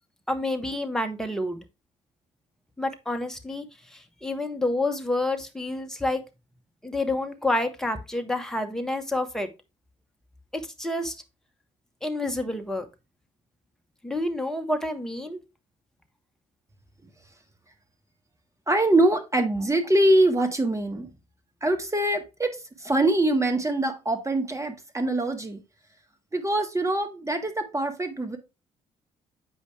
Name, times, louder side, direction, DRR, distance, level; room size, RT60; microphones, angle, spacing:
voice 1, 0.3-1.6 2.8-3.6 3.9-6.2 6.8-9.5 10.5-11.1 12.0-12.9 14.0-15.4, left 2 dB, 5° left, 1.5 m, -28 dB
voice 2, 18.7-21.1 21.6-25.6 26.3-28.4, right 1 dB, 20° right, 1.7 m, -24 dB
8.4 x 5.0 x 3.3 m
figure-of-eight pair, 50°, 17 cm